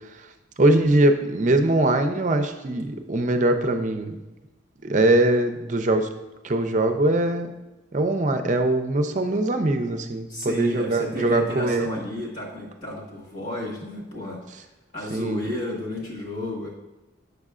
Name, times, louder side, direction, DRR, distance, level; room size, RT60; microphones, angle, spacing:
voice 1, 0.6-4.2 4.8-6.1 6.4-7.5 7.9-12.0 15.1-15.4, right 2 dB, 40° right, 7 dB, 0.5 m, -22 dB
voice 2, 10.3-14.6 14.9-16.7, left 1 dB, 45° left, -3 dB, 1.6 m, -32 dB
8.0 x 6.5 x 2.4 m, 1.1 s
head